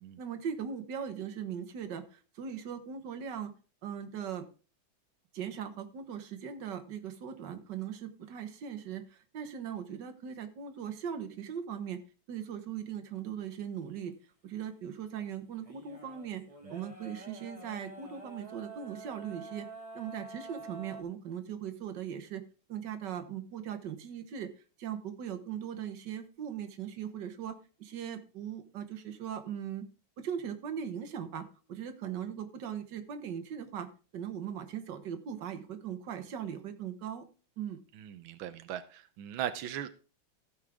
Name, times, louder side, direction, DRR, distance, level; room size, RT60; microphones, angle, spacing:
voice 1, 0.2-3.5 3.8-4.5 5.3-12.0 12.3-14.1 14.4-16.4 16.7-19.7 19.9-22.4 22.7-24.5 24.8-29.9 30.2-33.9 34.1-37.2 37.6-37.8, right 8 dB, 65° right, 8 dB, 1.9 m, -39 dB
sound 1, 15.6-21.0, right 3 dB, 15° right, 2.1 m, -47 dB
voice 2, 37.9-39.9, right 10 dB, 90° right, 11 dB, 1.5 m, -39 dB
15.5 x 6.4 x 3.6 m, 0.36 s
omnidirectional pair, 2.1 m